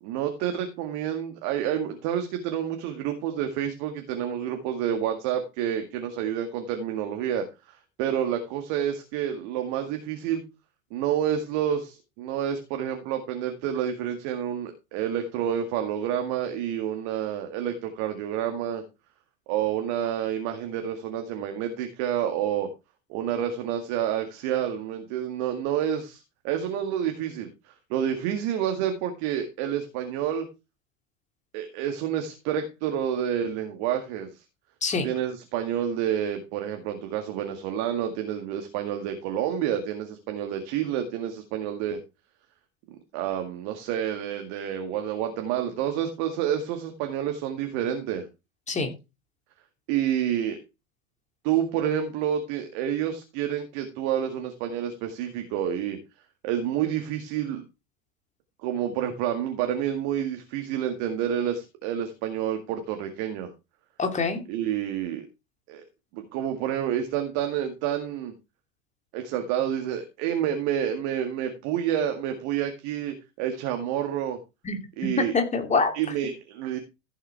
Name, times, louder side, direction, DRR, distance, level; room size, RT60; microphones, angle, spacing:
voice 1, 0.0-10.4 10.9-18.8 19.5-22.7 23.1-30.5 31.5-34.4 35.0-42.0 43.1-48.3 49.9-50.6 51.4-56.0 56.4-57.6 58.6-63.5 64.5-65.3 65.7-65.8 66.1-68.3 69.1-74.4 75.0-75.3 75.9-76.8, right 10 dB, 45° right, 6 dB, 1.9 m, -29 dB
voice 2, 64.0-64.4 74.6-75.9, left 4 dB, 15° left, 5 dB, 2.9 m, -25 dB
15.0 x 7.8 x 3.4 m, 0.27 s
figure-of-eight pair, 85°, 40 cm